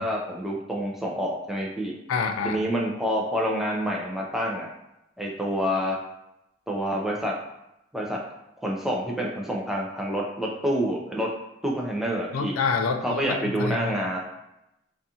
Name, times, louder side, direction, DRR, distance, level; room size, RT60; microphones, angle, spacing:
voice 1, 0.0-1.9 2.4-4.7 5.2-6.0 6.7-7.4 7.9-8.2 8.6-11.3 11.6-12.5 13.0-14.2, equal, ahead, -3 dB, 0.3 m, -27 dB
voice 2, 2.1-2.6 12.3-13.9, left 5 dB, 85° left, 6 dB, 0.3 m, -27 dB
2.4 x 2.3 x 2.7 m, 0.87 s
head